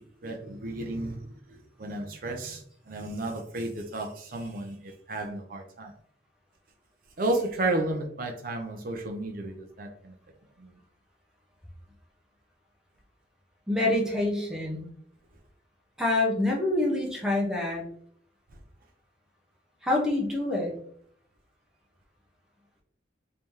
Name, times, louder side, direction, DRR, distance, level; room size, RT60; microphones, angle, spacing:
voice 1, 0.0-5.9 7.2-10.1 10.6-10.7, right 2 dB, 45° right, 2 dB, 0.5 m, -33 dB
voice 2, 13.7-14.9 16.0-17.8 19.8-20.7, left 2 dB, 5° right, -2 dB, 0.7 m, -26 dB
3.1 x 2.8 x 3.5 m, 0.62 s
head